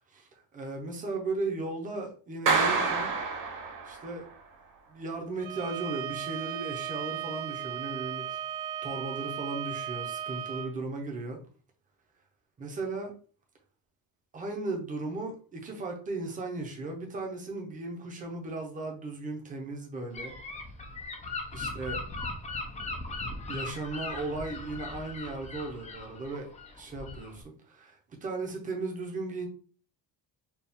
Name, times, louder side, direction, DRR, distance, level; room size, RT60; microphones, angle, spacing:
voice 1, 0.1-3.1 3.8-4.3 4.9-8.4 8.8-11.4 12.6-13.1 14.3-20.3 21.5-22.0 23.5-26.5 26.7-29.5, right 3 dB, 20° right, 0.6 m, -36 dB
Clapping, 2.5-4.2, right 4 dB, 45° right, 1.0 m, -27 dB
Bowed string instrument, 5.4-10.7, right 10 dB, 70° right, 0.7 m, -36 dB
Gull seagull / Wind, 20.1-27.4, left 3 dB, 20° left, 0.3 m, -39 dB
4.4 x 2.2 x 3.5 m
cardioid pair, 180°, 45 cm